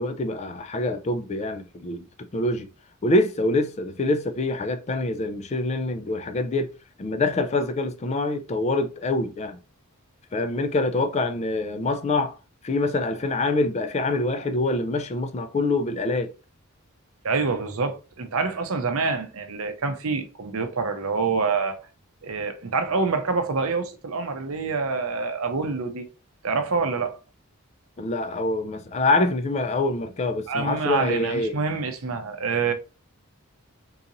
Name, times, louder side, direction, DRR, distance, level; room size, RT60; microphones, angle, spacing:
voice 1, 0.0-2.1 2.3-2.7 3.0-6.7 7.0-9.6 10.3-12.4 12.6-16.3 28.0-31.6, left 2 dB, 30° left, 0.3 m, -25 dB
voice 2, 17.2-21.8 22.2-26.1 26.4-27.2 30.5-32.7, right 4 dB, 75° right, 0.6 m, -26 dB
3.8 x 2.9 x 2.6 m
head